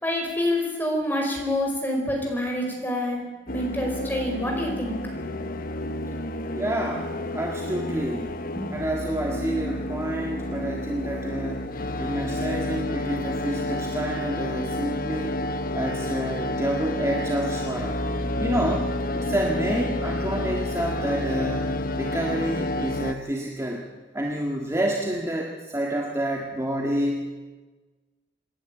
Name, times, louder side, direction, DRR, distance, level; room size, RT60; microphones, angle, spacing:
voice 1, 0.0-5.0 5.3-5.7 8.5-8.6, left 1 dB, 10° left, 0 dB, 5.0 m, -27 dB
sound 1, 3.5-23.1, left 1 dB, 50° left, 0.9 m, -30 dB
voice 2, 6.5-8.3 8.7-15.4 15.7-17.9 18.4-23.8 24.1-27.2, right 1 dB, 15° right, -1 dB, 1.8 m, -29 dB
27.0 x 11.0 x 8.9 m, 1.3 s
head